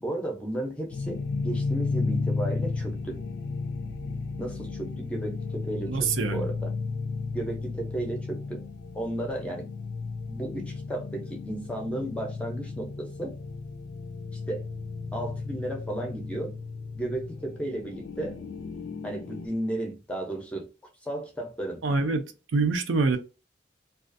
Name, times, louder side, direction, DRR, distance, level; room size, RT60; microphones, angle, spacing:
voice 1, 0.0-3.2 4.4-6.7 7.3-8.6 8.9-9.7 10.3-13.3 14.3-14.7 15.1-16.6 16.9-18.4 19.0-20.7 21.0-21.8, right 1 dB, 5° left, 0.5 m, -34 dB
sound 1, 0.9-19.5, left 4 dB, 60° left, 0.3 m, -34 dB
voice 2, 5.9-6.5 21.8-22.2 22.5-23.2, right 4 dB, 75° right, 0.4 m, -25 dB
2.4 x 2.3 x 2.5 m
head